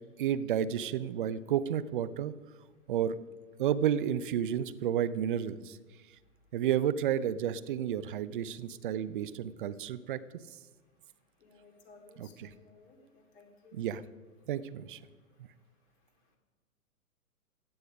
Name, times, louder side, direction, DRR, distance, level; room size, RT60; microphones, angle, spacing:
voice 1, 0.2-2.3 2.9-3.2 3.6-5.8 6.5-10.2 12.2-12.5 13.7-14.0 14.5-15.0, right 9 dB, 35° right, 15 dB, 0.5 m, -31 dB
voice 2, 11.4-13.8, left 3 dB, 45° left, 1 dB, 2.9 m, -58 dB
15.5 x 9.9 x 5.1 m, 1.4 s
figure-of-eight pair, 120°, 45 cm